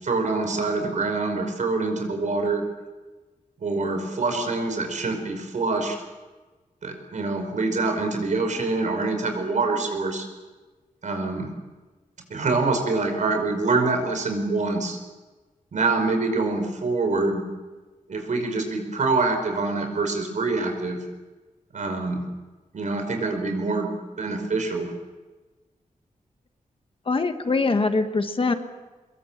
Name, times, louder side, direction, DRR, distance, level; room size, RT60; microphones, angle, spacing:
voice 1, 0.0-2.6 3.6-6.0 6.8-10.3 11.0-11.5 12.3-15.0 15.7-17.4 18.1-21.0 21.7-22.2 22.7-23.9 24.2-24.9, right 3 dB, 65° right, 5 dB, 5.2 m, -25 dB
voice 2, 27.1-28.5, left 3 dB, 40° left, 7 dB, 1.5 m, -23 dB
24.5 x 22.5 x 7.4 m, 1.3 s
wide cardioid pair, 135°, 14 cm